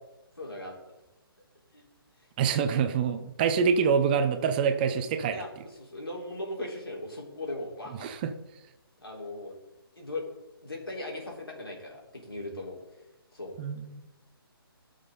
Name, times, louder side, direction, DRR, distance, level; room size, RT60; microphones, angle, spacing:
voice 1, 0.4-0.8 1.7-1.8 2.2-2.3 5.3-8.1 9.0-9.6 10.0-10.3 10.6-13.0 13.3-13.5, left 2 dB, 75° left, -2 dB, 3.9 m, -38 dB
voice 2, 2.4-5.4 8.0-8.3 13.6-14.0, right 6 dB, 25° right, 8 dB, 0.7 m, -26 dB
18.0 x 6.6 x 3.8 m, 1.0 s
figure-of-eight pair, 140°, 13 cm